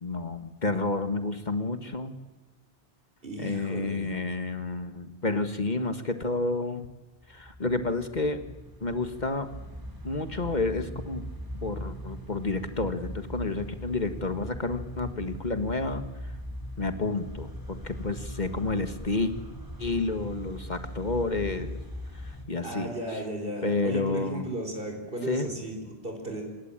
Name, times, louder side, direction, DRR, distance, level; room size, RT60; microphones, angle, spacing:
voice 1, 0.0-2.1 3.4-6.9 7.3-8.4 8.8-9.5 10.0-11.2 11.6-16.0 16.8-19.3 19.8-21.8 22.2-22.9 23.6-24.4 25.3-25.5, left 3 dB, 45° left, 9 dB, 1.6 m, -30 dB
voice 2, 3.2-4.2 22.6-26.4, right 1 dB, 60° right, 3 dB, 4.8 m, -35 dB
sound 1, 7.2-22.4, equal, 20° right, 3.6 m, -40 dB
27.0 x 21.0 x 8.8 m, 1.1 s
omnidirectional pair, 1.1 m